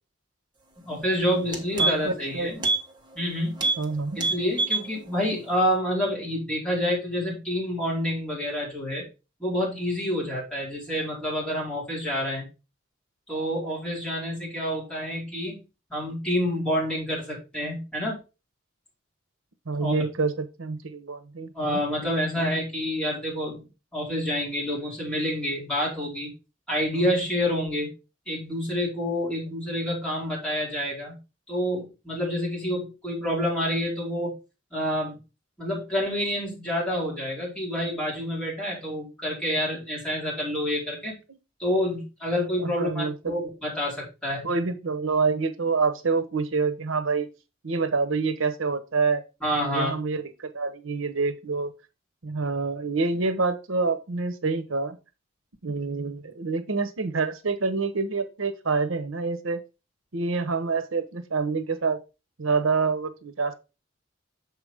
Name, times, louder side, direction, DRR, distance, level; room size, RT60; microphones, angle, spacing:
voice 1, 0.8-2.6 3.1-3.6 4.1-9.0 9.4-12.4 13.3-15.6 15.9-18.2 19.8-19.9 21.5-23.7 23.9-26.3 26.7-27.9 28.3-31.1 31.5-34.3 34.7-35.2 35.6-41.1 41.6-44.4 49.4-49.9, equal, 5° left, -6 dB, 4.4 m, -28 dB
sound 1, 0.9-1.0 1.3-2.2 2.6-2.8 3.1-3.3 3.6-3.8 4.1-4.9 5.2-5.3, right 3 dB, 20° right, 1.2 m, -26 dB
voice 2, 1.8-2.5 3.8-4.2 19.7-21.8 42.6-43.1 44.4-47.3 47.6-49.2 49.6-51.7 52.2-55.0 55.6-59.6 60.1-62.0 62.4-63.5, right 4 dB, 85° right, 10 dB, 0.9 m, -27 dB
7.0 x 4.9 x 4.9 m, 0.29 s
head